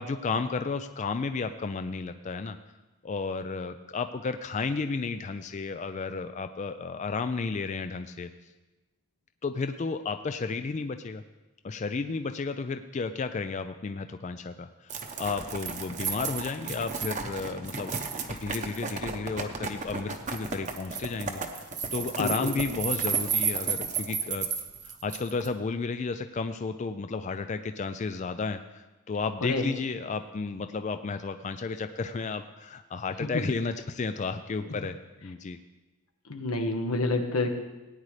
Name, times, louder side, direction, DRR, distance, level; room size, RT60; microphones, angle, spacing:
voice 1, 0.0-2.6 3.0-8.3 9.4-11.2 11.6-18.0 18.3-24.5 24.8-35.0 35.2-35.6, left 4 dB, 35° left, 9 dB, 0.3 m, -33 dB
sound 1, 14.9-25.5, right 6 dB, 35° right, 0.8 m, -32 dB
voice 2, 22.2-22.5 29.4-29.7 33.2-33.4 36.3-37.6, left 2 dB, 85° left, 5 dB, 1.2 m, -28 dB
17.5 x 9.6 x 3.3 m, 1.1 s
head